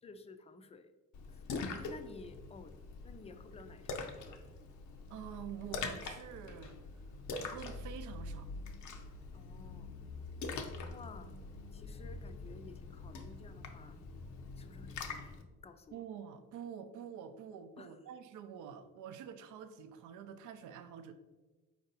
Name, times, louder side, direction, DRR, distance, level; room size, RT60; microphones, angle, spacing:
voice 1, 0.0-0.9 1.3-2.8 3.0-4.4 9.3-9.9 10.9-11.4 11.7-14.0 14.5-15.3 15.6-16.0 17.8-17.9, left 4 dB, 20° left, 9 dB, 0.3 m, -53 dB
Splash splatter, 1.1-15.4, left 3 dB, 75° left, 0.6 m, -44 dB
voice 2, 5.1-6.8 7.4-8.5 15.9-21.1, right 8 dB, 85° right, 9 dB, 0.5 m, -47 dB
4.5 x 2.6 x 3.9 m, 1.2 s
cardioid pair, 90°, 30 cm